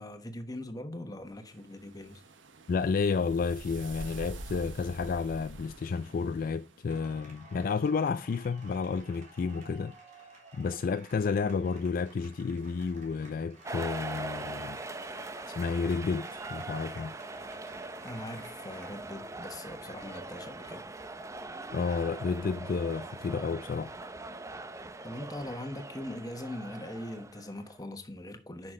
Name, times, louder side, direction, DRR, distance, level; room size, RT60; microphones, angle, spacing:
voice 1, 0.0-2.2 18.0-20.8 25.0-28.7, left 1 dB, 20° left, 1.2 m, -41 dB
sound 1, 1.5-6.8, right 2 dB, 75° right, 1.2 m, -46 dB
voice 2, 2.7-9.9 10.5-14.8 15.1-17.1 21.7-23.9, left 5 dB, 45° left, 0.3 m, -31 dB
sound 2, 6.9-18.9, right 2 dB, 40° right, 3.5 m, -54 dB
sound 3, 13.6-27.8, right 2 dB, 15° right, 0.5 m, -42 dB
9.5 x 6.0 x 3.7 m
head